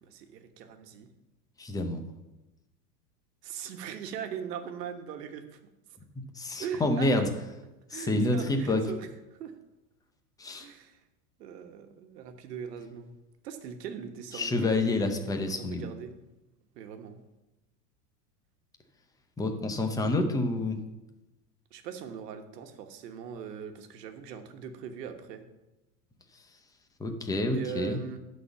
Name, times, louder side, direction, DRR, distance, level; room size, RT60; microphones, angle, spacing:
voice 1, 0.0-1.1 3.4-5.6 6.6-7.2 7.9-9.1 9.4-9.5 10.6-11.0 11.4-13.1 13.4-16.2 16.7-17.2 21.7-25.4 27.5-28.2, right 8 dB, 80° right, 7 dB, 1.3 m, -40 dB
voice 2, 1.6-2.0 6.4-7.3 7.9-8.8 10.4-10.7 14.3-15.9 19.4-20.8 27.0-28.0, left 2 dB, 10° left, 5 dB, 0.7 m, -28 dB
11.0 x 4.2 x 7.1 m, 1.0 s
supercardioid pair, 140°, 47 cm